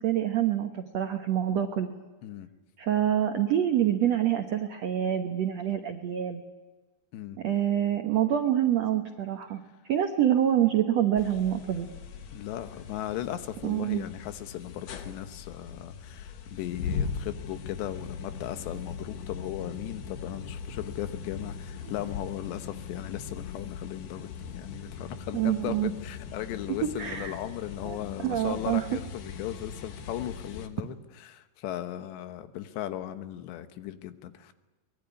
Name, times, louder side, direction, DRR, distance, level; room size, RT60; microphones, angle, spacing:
voice 1, 0.0-1.9 2.8-6.4 7.4-9.6 9.9-11.9 13.6-14.0 25.3-25.9 27.0-27.4 27.8-28.0 28.2-28.9, right 11 dB, 80° right, 6 dB, 1.5 m, -26 dB
sound 1, 11.2-30.7, left 6 dB, 60° left, 2.8 m, -40 dB
voice 2, 12.3-34.5, left 12 dB, 85° left, 10 dB, 3.4 m, -37 dB
24.0 x 21.5 x 9.6 m, 1.2 s
omnidirectional pair, 4.9 m